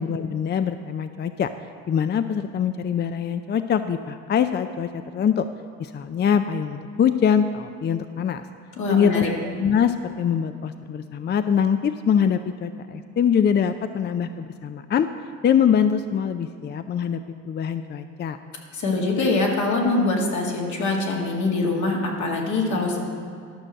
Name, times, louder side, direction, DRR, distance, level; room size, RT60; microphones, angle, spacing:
voice 1, 0.0-1.5 1.9-5.5 5.8-8.4 8.9-15.1 15.4-18.4, left 8 dB, 35° left, 10 dB, 0.4 m, -23 dB
voice 2, 8.8-9.3 18.7-23.0, left 3 dB, 75° left, -2 dB, 2.2 m, -23 dB
12.5 x 6.2 x 6.5 m, 2.3 s
cardioid pair, 90°, 30 cm